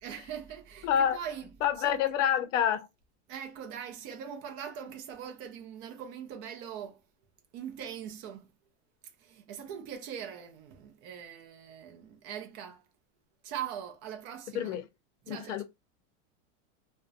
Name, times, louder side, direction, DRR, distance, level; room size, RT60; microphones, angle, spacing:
voice 1, 0.0-1.5 1.8-2.2 3.3-7.0 7.5-8.5 9.2-12.9 13.4-14.8 15.2-15.6, right 9 dB, 30° right, 0.4 m, -41 dB
voice 2, 0.8-1.2 1.6-2.9 14.5-14.8 15.3-15.6, left 9 dB, 75° left, 0.6 m, -27 dB
2.4 x 2.1 x 2.4 m
supercardioid pair, 160°, 38 cm